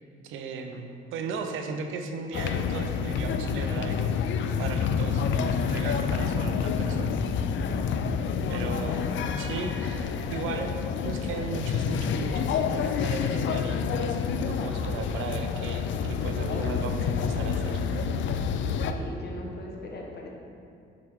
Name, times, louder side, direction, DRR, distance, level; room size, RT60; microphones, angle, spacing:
voice 1, 0.2-4.1 4.6-7.2 8.5-9.1 9.4-10.8 11.0-17.8, right 5 dB, 85° right, 5 dB, 0.6 m, -36 dB
sound 1, 2.3-18.9, left 6 dB, 70° left, 0.4 m, -28 dB
voice 2, 8.4-9.0 18.6-20.3, left 2 dB, 55° left, 0 dB, 1.2 m, -40 dB
7.5 x 4.8 x 3.7 m, 2.5 s
cardioid pair, 90°, 20 cm